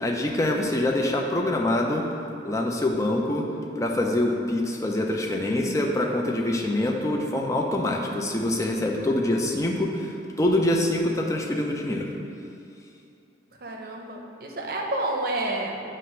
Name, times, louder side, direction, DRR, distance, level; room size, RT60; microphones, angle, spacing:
voice 1, 0.0-2.0 2.4-3.5 3.8-12.1, left 1 dB, 15° left, 0 dB, 0.4 m, -25 dB
voice 2, 13.6-15.8, right 2 dB, 50° right, 1 dB, 0.6 m, -29 dB
7.5 x 2.5 x 5.4 m, 2.5 s
head